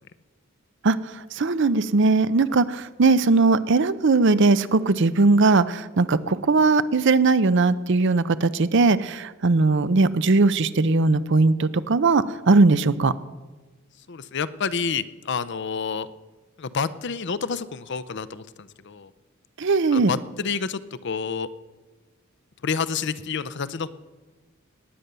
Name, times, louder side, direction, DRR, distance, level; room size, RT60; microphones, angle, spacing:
voice 1, 1.3-13.1 19.6-20.1, right 3 dB, 60° right, 15 dB, 0.6 m, -19 dB
voice 2, 14.1-16.1 16.6-19.1 19.9-21.5 22.6-23.9, left 5 dB, 55° left, 15 dB, 0.6 m, -29 dB
19.0 x 9.1 x 6.8 m, 1.2 s
head